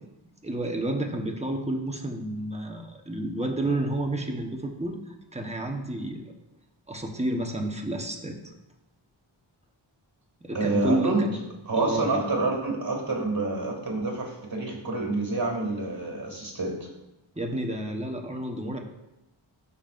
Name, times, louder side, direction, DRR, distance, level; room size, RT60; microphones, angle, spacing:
voice 1, 0.4-6.3 6.9-8.5 10.4-11.4 11.7-12.2 17.4-18.8, right 1 dB, 15° right, 2 dB, 1.1 m, -30 dB
voice 2, 10.5-11.3 11.7-16.9, right 2 dB, 45° right, 1 dB, 2.4 m, -28 dB
12.5 x 5.5 x 2.6 m, 0.92 s
wide cardioid pair, 80°, 47 cm